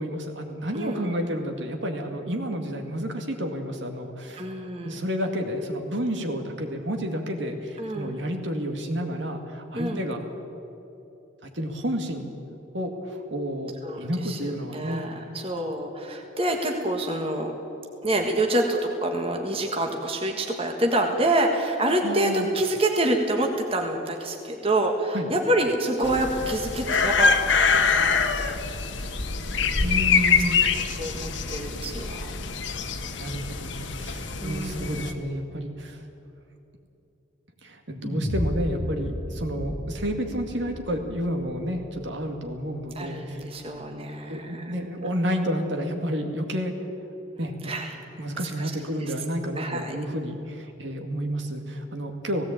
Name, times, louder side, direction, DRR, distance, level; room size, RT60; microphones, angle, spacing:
voice 1, 0.0-4.4 4.8-10.2 11.4-12.3 12.7-15.0 22.0-22.5 25.1-25.3 28.9-29.2 29.8-30.6 33.2-36.0 37.6-43.4 44.3-46.7 47.4-47.7 48.2-52.4, equal, 70° right, 4 dB, 2.2 m, -30 dB
voice 2, 0.7-1.3 4.4-5.0 7.8-8.2 9.7-10.0 13.8-17.5 18.0-28.8 30.6-32.3 34.4-35.1 42.9-44.7 45.1-45.2 47.6-48.0 48.3-48.7 49.6-50.0, right 1 dB, 30° right, 2 dB, 1.6 m, -27 dB
sound 1, 26.0-35.1, left 5 dB, 70° left, 1.3 m, -25 dB
sound 2, 38.0-42.4, equal, 50° left, 1.9 m, -33 dB
17.5 x 17.0 x 8.8 m, 2.9 s
head